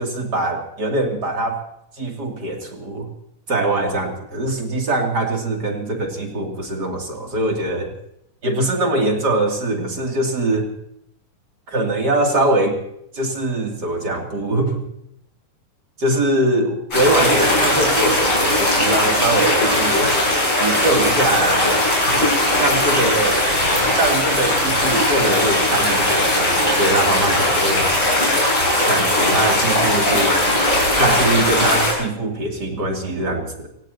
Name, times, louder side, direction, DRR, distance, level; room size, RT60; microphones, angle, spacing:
voice 1, 0.0-1.6 2.0-3.1 3.5-7.9 8.4-10.7 11.7-12.8 13.1-14.8 16.0-20.1 20.6-21.8 22.0-22.3 22.6-23.4 23.9-27.9 28.9-30.4 31.0-33.7, right 2 dB, 35° right, 1 dB, 2.8 m, -22 dB
sound 1, 16.9-31.9, left 1 dB, 35° left, 8.7 m, -18 dB
28.5 x 17.5 x 2.8 m, 0.77 s
omnidirectional pair, 3.7 m